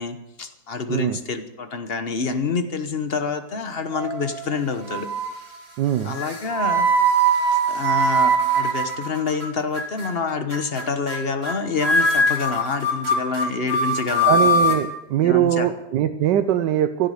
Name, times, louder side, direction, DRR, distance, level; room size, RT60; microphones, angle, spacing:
voice 1, 0.0-5.1 6.0-6.9 7.7-14.4 15.2-15.7, left 5 dB, 40° left, 8 dB, 1.3 m, -27 dB
sound 1, 3.9-4.5 4.9-5.4 6.1-9.4 9.7-10.1 10.5-10.8 11.1-11.2 11.4-11.5 11.8-14.8, right 1 dB, 35° right, 3.0 m, -21 dB
voice 2, 5.8-6.2 14.3-17.1, right 11 dB, 85° right, 9 dB, 1.3 m, -21 dB
16.5 x 11.5 x 6.5 m, 0.92 s
omnidirectional pair, 1.8 m